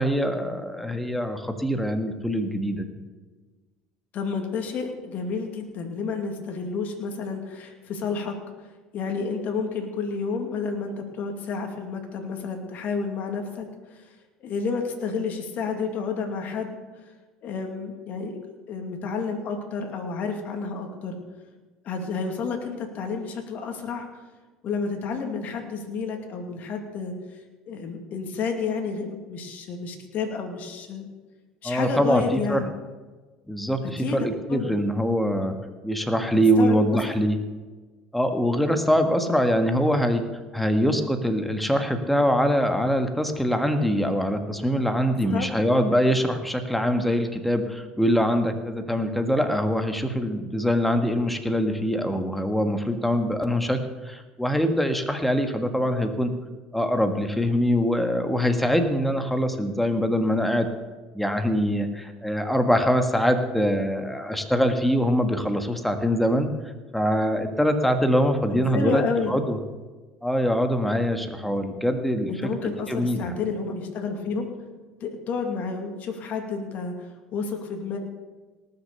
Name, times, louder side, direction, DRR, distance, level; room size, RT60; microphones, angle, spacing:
voice 1, 0.0-2.9 31.6-32.7 33.5-35.5 35.8-37.4 38.1-40.2 40.5-53.8 54.0-56.3 56.7-60.7 61.1-66.5 66.9-69.0 69.3-69.6 70.2-72.3 72.6-73.3, equal, 5° left, 6 dB, 1.6 m, -23 dB
voice 2, 4.1-8.3 8.9-14.0 14.4-16.8 17.4-18.4 18.7-21.2 21.8-24.1 24.6-27.1 27.7-31.1 31.6-32.6 34.0-34.6 36.6-37.0 45.1-45.5 68.5-69.3 72.3-74.5 75.0-78.0, left 5 dB, 55° left, 4 dB, 2.4 m, -30 dB
18.5 x 6.8 x 6.8 m, 1.3 s
hypercardioid pair, 80°, 3 cm